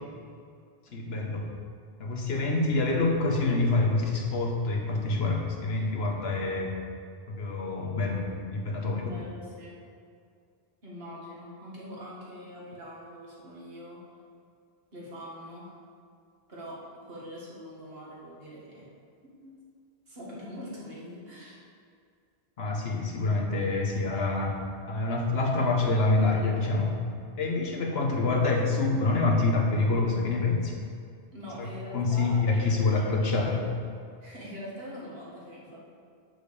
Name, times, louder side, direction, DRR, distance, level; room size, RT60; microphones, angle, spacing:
voice 1, 0.9-1.5 2.0-6.7 7.3-9.1 22.6-24.6 24.9-27.0 27.4-30.8 31.6-33.7, left 3 dB, 75° left, 0 dB, 1.3 m, -26 dB
voice 2, 9.0-9.8 10.8-14.0 14.9-15.7 16.5-18.9 19.4-19.5 20.1-21.6 31.3-33.1 34.2-35.8, equal, 70° right, -6 dB, 2.2 m, -43 dB
6.1 x 5.1 x 6.7 m, 2.3 s
omnidirectional pair, 1.1 m